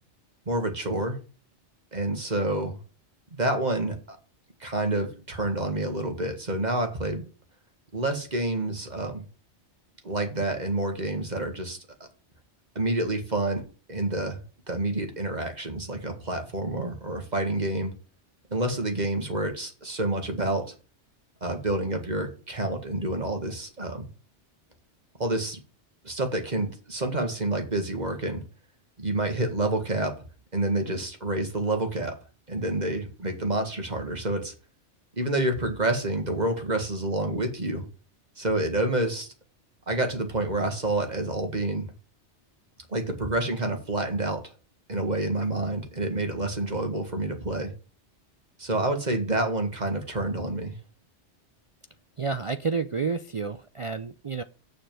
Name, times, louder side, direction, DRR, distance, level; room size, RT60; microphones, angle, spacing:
voice 1, 0.5-1.2 1.9-2.8 3.4-4.2 4.6-7.2 7.9-9.2 10.0-11.8 12.8-13.6 13.9-17.9 18.5-20.7 21.4-24.1 25.2-25.6 26.0-28.4 29.0-30.1 30.5-32.1 32.5-34.5 35.2-37.9 38.4-39.3 39.9-41.9 42.9-44.4 44.9-47.7 48.6-50.8, right 2 dB, 40° right, 5 dB, 2.0 m, -28 dB
voice 2, 52.2-54.4, right 4 dB, 55° right, 11 dB, 0.3 m, -30 dB
7.2 x 6.6 x 7.6 m, 0.36 s
omnidirectional pair, 1.2 m